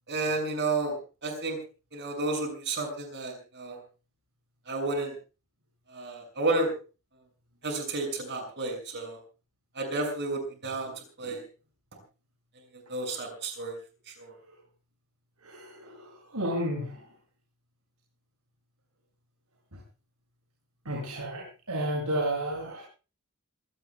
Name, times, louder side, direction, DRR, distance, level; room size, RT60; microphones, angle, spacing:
voice 1, 0.1-0.9 1.2-1.6 1.9-3.8 4.7-5.1 5.9-6.7 7.6-9.2 9.7-10.9 11.2-11.4 12.9-13.8 14.2-14.3, right 2 dB, 55° right, 4 dB, 6.5 m, -31 dB
voice 2, 15.4-17.0 20.9-22.8, right 1 dB, 80° right, -1 dB, 7.4 m, -32 dB
27.0 x 18.0 x 2.3 m, 0.34 s
head